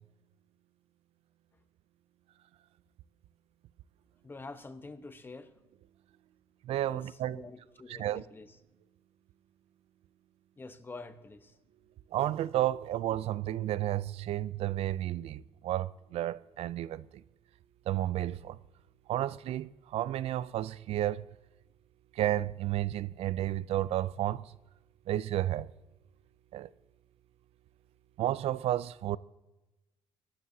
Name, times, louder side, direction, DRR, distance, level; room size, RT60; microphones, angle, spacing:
voice 1, 4.2-5.5 6.9-8.6 10.6-11.6, left 3 dB, 20° left, 0.9 m, -47 dB
voice 2, 6.7-7.4 7.9-8.2 12.1-17.1 17.9-18.6 19.1-21.3 22.2-24.4 25.1-25.7 26.5-26.7 28.2-29.2, right 13 dB, 70° right, 0.4 m, -32 dB
23.0 x 12.5 x 2.8 m
cardioid pair, 130°, 11 cm